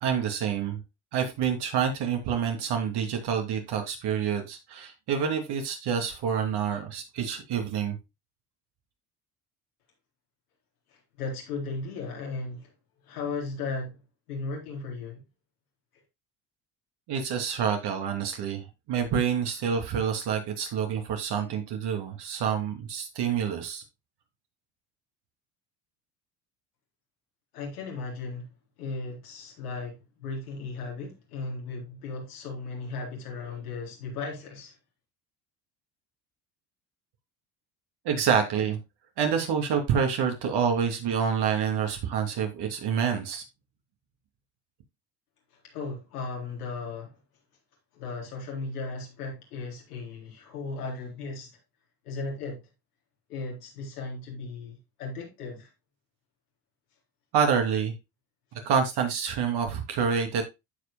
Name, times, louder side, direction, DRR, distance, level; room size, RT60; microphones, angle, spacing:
voice 1, 0.0-0.8 1.1-8.0 17.1-23.8 38.0-38.8 39.2-43.4 57.3-57.9 58.6-60.4, right 7 dB, 60° right, 2.9 m, -27 dB
voice 2, 11.2-12.7 13.1-14.0 14.3-15.2 27.5-28.4 28.8-34.7 45.7-47.2 47.9-51.5 52.0-52.6 53.3-55.7, left 3 dB, 90° left, 4.0 m, -36 dB
15.0 x 5.1 x 2.2 m
hypercardioid pair, 75°, 44 cm